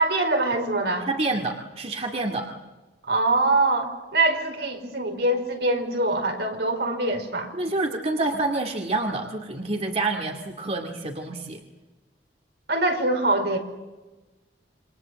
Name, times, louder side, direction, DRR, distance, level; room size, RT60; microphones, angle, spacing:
voice 1, 0.0-1.1 3.0-7.5 12.7-13.6, right 2 dB, 70° right, 4 dB, 5.0 m, -23 dB
voice 2, 1.1-2.5 7.5-11.6, right 2 dB, 35° right, 3 dB, 2.2 m, -27 dB
28.0 x 25.5 x 7.7 m, 1.2 s
head